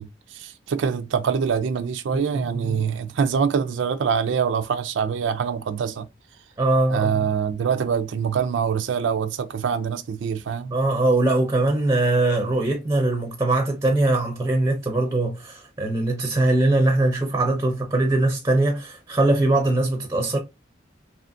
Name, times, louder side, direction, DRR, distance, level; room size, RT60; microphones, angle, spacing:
voice 1, 0.0-6.1 6.9-10.7, right 6 dB, 80° right, 0.3 m, -24 dB
voice 2, 2.1-2.8 6.6-7.3 10.7-20.4, right 2 dB, 15° right, 0.5 m, -21 dB
2.7 x 2.4 x 2.5 m
head